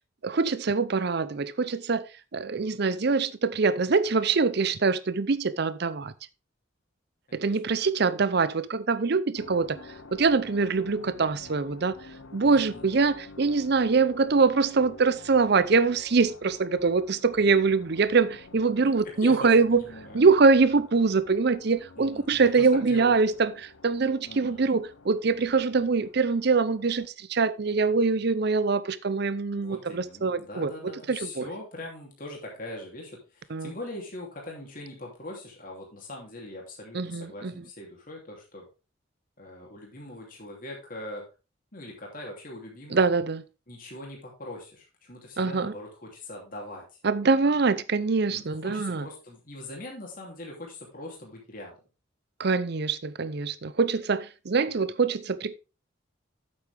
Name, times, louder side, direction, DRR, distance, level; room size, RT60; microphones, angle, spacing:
voice 1, 0.2-2.1 2.3-6.1 7.3-11.9 12.3-19.8 20.1-31.5 33.5-33.7 36.9-37.6 42.9-43.4 45.4-45.7 47.0-49.1 52.4-55.5, right 4 dB, 55° right, 0.6 m, -24 dB
sound 1, 9.4-27.1, left 3 dB, 80° left, 0.9 m, -49 dB
voice 2, 12.4-12.9 19.2-20.3 22.0-23.1 24.2-24.7 29.5-38.7 39.4-41.2 41.7-43.0 43.7-46.8 48.3-51.7, left 1 dB, 45° left, 2.8 m, -41 dB
8.7 x 7.8 x 3.4 m
head